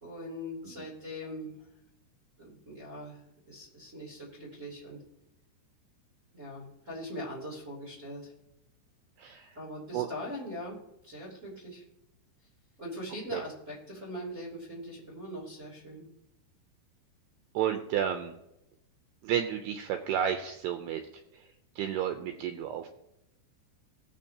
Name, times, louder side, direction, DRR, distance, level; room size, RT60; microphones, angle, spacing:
voice 1, 0.0-1.5 2.4-5.0 6.3-8.3 9.6-10.8 11.0-11.8 12.8-16.0, equal, 20° right, -8 dB, 2.6 m, -41 dB
voice 2, 17.6-18.3 19.2-21.0 21.8-22.9, right 9 dB, 90° right, 6 dB, 2.3 m, -31 dB
19.5 x 7.7 x 2.8 m, 0.86 s
omnidirectional pair, 5.5 m